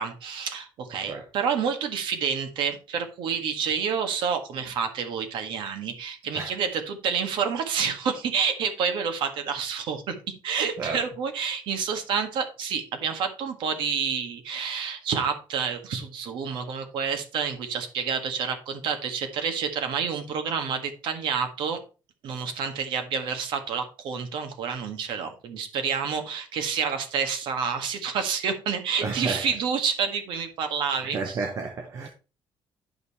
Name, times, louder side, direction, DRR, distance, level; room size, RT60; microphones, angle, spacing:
voice 1, 0.0-21.8 22.2-31.4, right 6 dB, 65° right, 1.6 m, -29 dB
voice 2, 29.0-29.5 31.1-32.1, right 4 dB, 35° right, 1.1 m, -31 dB
10.5 x 5.3 x 4.3 m
cardioid pair, 170°, 9 cm